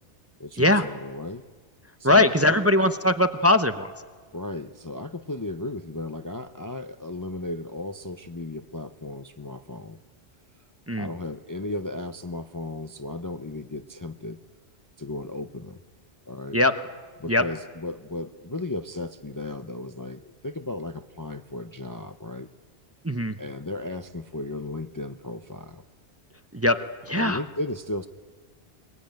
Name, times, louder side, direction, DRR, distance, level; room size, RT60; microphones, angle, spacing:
voice 1, 0.4-1.4 2.0-2.3 4.3-10.0 10.9-14.4 15.0-15.8 16.3-16.6 17.2-22.5 23.4-25.8 27.1-28.1, left 2 dB, 20° left, 8 dB, 0.6 m, -35 dB
voice 2, 2.0-3.9 10.9-11.1 16.5-16.8 17.3-17.5 23.0-23.4 26.5-26.8 27.1-27.4, left 1 dB, 15° right, 9 dB, 0.6 m, -20 dB
23.0 x 22.0 x 9.1 m, 1.5 s
omnidirectional pair, 1.1 m